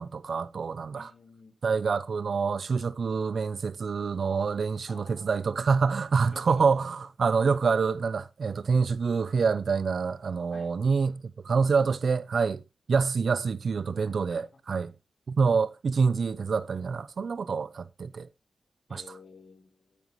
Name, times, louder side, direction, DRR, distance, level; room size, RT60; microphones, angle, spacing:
voice 1, 0.0-1.1 1.6-12.6 12.9-14.9 15.3-18.3 18.9-19.0, right 5 dB, 70° right, 0.7 m, -26 dB
voice 2, 0.9-1.5 4.9-5.6 6.2-6.7 10.5-10.7 14.3-14.4 18.9-20.0, left 4 dB, 55° left, 4.6 m, -51 dB
13.5 x 9.2 x 3.1 m
cardioid pair, 55°, 0 cm